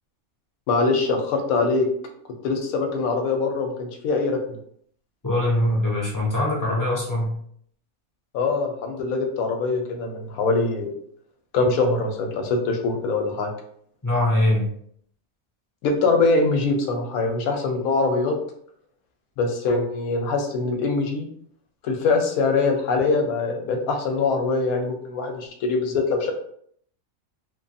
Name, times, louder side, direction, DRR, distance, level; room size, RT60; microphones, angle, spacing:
voice 1, 0.7-1.9 2.4-4.6 8.3-10.9 11.5-13.5 15.8-18.3 19.4-21.3 21.8-26.3, left 3 dB, 90° left, 4 dB, 1.1 m, -23 dB
voice 2, 5.2-7.3 14.0-14.7, left 1 dB, 25° left, -5 dB, 0.4 m, -22 dB
3.0 x 2.2 x 2.7 m, 0.65 s
omnidirectional pair, 1.5 m